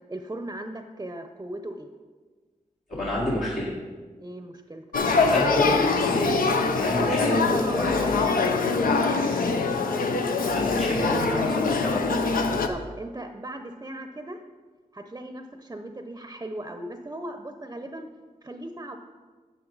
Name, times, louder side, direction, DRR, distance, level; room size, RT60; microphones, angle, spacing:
voice 1, 0.1-1.9 4.2-4.8 7.0-8.5 12.5-14.4 14.9-18.1 18.4-19.0, right 1 dB, 20° right, 6 dB, 0.6 m, -37 dB
voice 2, 2.9-3.7 5.1-6.4 6.7-8.2 10.5-12.0, left 1 dB, 65° left, -8 dB, 2.0 m, -28 dB
Male speech man speaking / Child speech kid speaking / Conversation, 4.9-12.7, left 4 dB, 85° left, 0.6 m, -24 dB
8.9 x 7.2 x 4.0 m, 1.4 s
cardioid pair, 50°, 14 cm